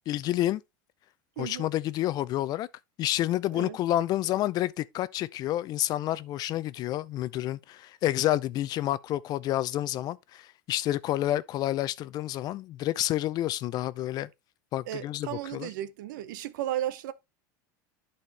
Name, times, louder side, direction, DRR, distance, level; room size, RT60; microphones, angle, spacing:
voice 1, 0.1-0.6 1.4-2.7 3.0-14.3 14.7-15.7, left 14 dB, 40° left, 0.5 m, -29 dB
voice 2, 1.4-1.7 3.5-3.8 14.8-17.1, right 12 dB, 80° right, 0.8 m, -34 dB
10.5 x 4.3 x 3.2 m
supercardioid pair, 130°, 10 cm